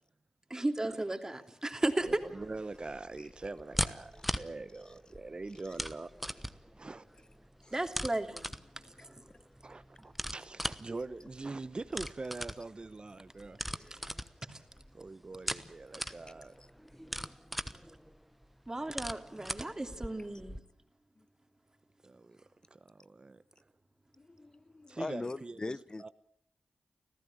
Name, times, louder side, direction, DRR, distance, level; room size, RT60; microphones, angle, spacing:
voice 1, 0.5-2.1 7.7-8.5 9.0-9.1 13.9-14.0 14.5-14.6 18.7-20.6, right 1 dB, 25° right, 3.0 m, -35 dB
sound 1, 2.0-20.6, equal, ahead, 1.2 m, -41 dB
voice 2, 2.0-7.2 9.6-13.6 14.9-16.5 22.0-22.4 22.7-23.4 24.9-26.1, right 3 dB, 40° right, 1.0 m, -43 dB
voice 3, 24.2-26.1, left 2 dB, 35° left, 0.8 m, -41 dB
25.5 x 15.0 x 8.7 m
cardioid pair, 45°, 2 cm